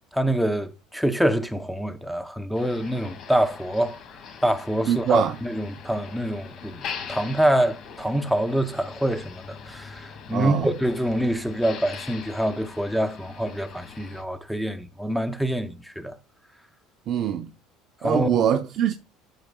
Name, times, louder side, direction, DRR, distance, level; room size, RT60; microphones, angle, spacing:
voice 1, 0.1-4.0 4.4-16.1 18.0-18.4, right 1 dB, ahead, 0.7 m, -25 dB
Motor vehicle (road), 2.5-14.2, left 6 dB, 45° left, 2.3 m, -41 dB
voice 2, 4.9-5.4 10.3-10.7 17.1-17.5 18.0-18.9, right 9 dB, 45° right, 0.7 m, -23 dB
14.0 x 4.7 x 2.3 m
cardioid pair, 145°, 0 cm